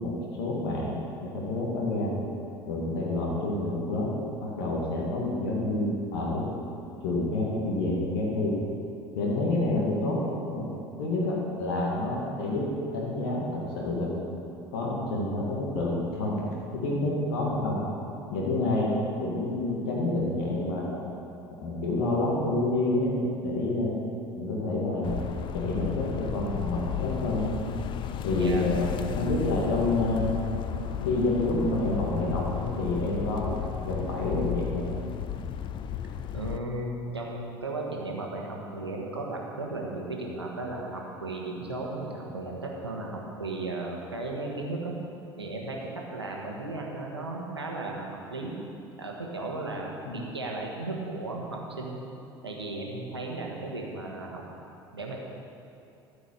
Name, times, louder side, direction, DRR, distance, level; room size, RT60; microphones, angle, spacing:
voice 1, 0.0-2.1 2.7-4.1 4.4-6.5 7.0-8.6 9.1-10.7 11.0-12.7 12.9-14.1 14.7-16.4 16.7-17.8 18.3-18.9 19.2-21.0 21.6-23.9 24.4-25.2 25.5-27.5 28.2-28.8 29.2-30.2 31.0-34.9 50.1-50.2, left 2 dB, 65° left, -4 dB, 1.9 m, -28 dB
sound 1, 25.0-36.6, left 9 dB, 40° left, 0.5 m, -33 dB
voice 2, 36.3-44.9 45.4-48.5 49.0-52.0 52.4-54.4 54.9-55.2, right 2 dB, 85° right, -1 dB, 1.3 m, -35 dB
13.0 x 5.4 x 6.6 m, 2.8 s
figure-of-eight pair, 65°, 13 cm